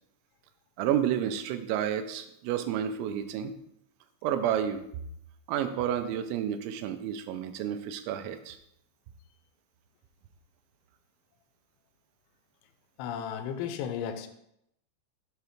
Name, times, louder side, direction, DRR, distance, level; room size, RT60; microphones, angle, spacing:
voice 1, 0.8-3.5 4.2-4.8 5.5-8.6, right 10 dB, 85° right, 9 dB, 2.9 m, -30 dB
voice 2, 13.0-14.3, left 8 dB, 80° left, 7 dB, 2.9 m, -34 dB
7.9 x 2.9 x 5.8 m, 0.78 s
omnidirectional pair, 5.3 m